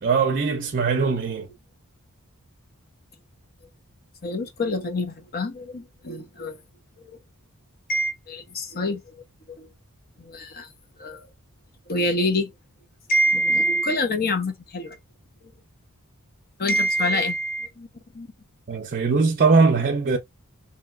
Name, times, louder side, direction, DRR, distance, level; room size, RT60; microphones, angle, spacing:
voice 1, 0.0-1.5 18.7-20.2, right 4 dB, 40° right, 0.5 m, -21 dB
voice 2, 4.2-6.6 7.0-7.2 7.9-9.0 9.5-9.7 10.2-10.7 11.0-11.2 11.9-12.5 13.1-15.0 16.6-17.9 18.1-18.3, equal, 45° left, 0.8 m, -25 dB
3.0 x 2.8 x 2.3 m
head